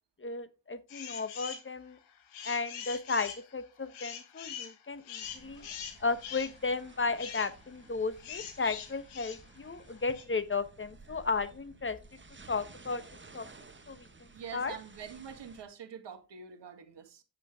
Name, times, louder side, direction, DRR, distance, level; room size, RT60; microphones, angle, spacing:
voice 1, 0.2-2.0 2.4-5.7 6.0-12.0 12.5-13.0 13.3-13.5 13.9-14.1 14.5-14.8, left 4 dB, 25° left, 1.3 m, -34 dB
sound 1, 0.9-1.7 2.1-10.2, left 8 dB, 75° left, 1.9 m, -44 dB
sound 2, 5.2-15.6, right 3 dB, 25° right, 1.7 m, -55 dB
voice 2, 14.3-17.2, right 7 dB, 55° right, 2.1 m, -45 dB
9.7 x 7.6 x 3.7 m
hypercardioid pair, 45°, 50 cm